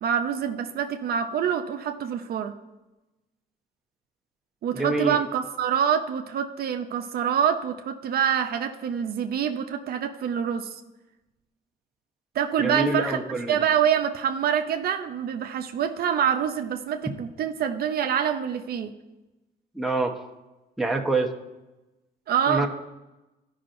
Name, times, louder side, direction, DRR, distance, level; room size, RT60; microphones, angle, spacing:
voice 1, 0.0-2.6 4.6-10.8 12.3-13.2 13.5-18.9 22.3-22.7, right 8 dB, 60° right, 7 dB, 0.6 m, -26 dB
voice 2, 4.7-5.2 12.6-13.6 19.7-20.1 20.8-21.3 22.5-22.7, right 2 dB, ahead, 0 dB, 0.9 m, -25 dB
12.5 x 5.5 x 2.6 m, 1.0 s
cardioid pair, 90°, 18 cm